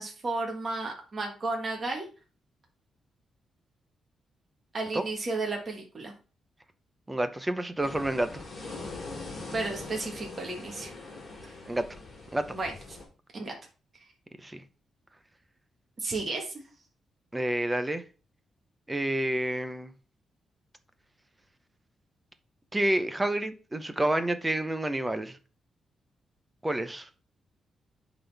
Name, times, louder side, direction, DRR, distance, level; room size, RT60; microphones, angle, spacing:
voice 1, 0.0-2.1 4.7-6.1 9.5-10.9 11.4-11.6 12.5-12.7 13.3-13.5 16.0-16.5, right 3 dB, 30° right, 1.4 m, -33 dB
voice 2, 7.1-8.4 11.7-11.9 12.3-12.5 14.4-14.6 17.3-18.0 18.9-19.9 22.7-25.4 26.6-27.1, right 1 dB, 10° right, 0.7 m, -29 dB
sound 1, 7.8-13.0, left 3 dB, 25° left, 3.4 m, -42 dB
11.0 x 4.0 x 3.4 m
wide cardioid pair, 165°, 0 cm